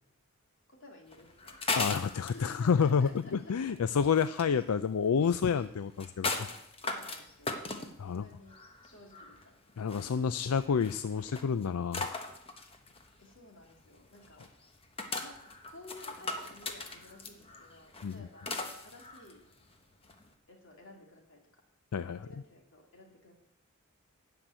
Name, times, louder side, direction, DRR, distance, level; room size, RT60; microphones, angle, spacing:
voice 1, 0.7-1.6 2.2-3.5 6.8-7.6 8.0-8.6 8.8-9.5 10.1-10.4 13.2-14.5 15.2-15.4 15.7-19.4 20.5-21.4 22.1-23.4, left 2 dB, 55° left, 1 dB, 2.8 m, -53 dB
sound 1, 1.1-20.3, left 3 dB, 25° left, 1.1 m, -39 dB
voice 2, 1.8-6.5 8.0-8.2 9.8-12.2 18.0-18.2 21.9-22.2, left 6 dB, 80° left, 13 dB, 0.4 m, -29 dB
13.0 x 5.9 x 9.0 m, 0.79 s
head